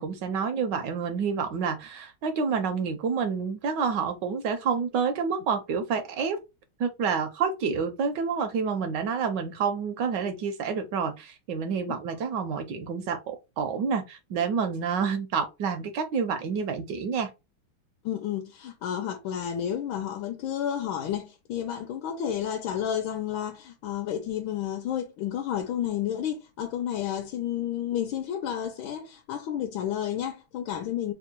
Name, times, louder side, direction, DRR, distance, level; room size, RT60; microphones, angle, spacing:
voice 1, 0.0-6.4 6.8-17.3, right 6 dB, 75° right, 1.1 m, -28 dB
voice 2, 18.0-31.1, left 10 dB, 80° left, 1.4 m, -31 dB
3.6 x 2.1 x 4.3 m
omnidirectional pair, 2.2 m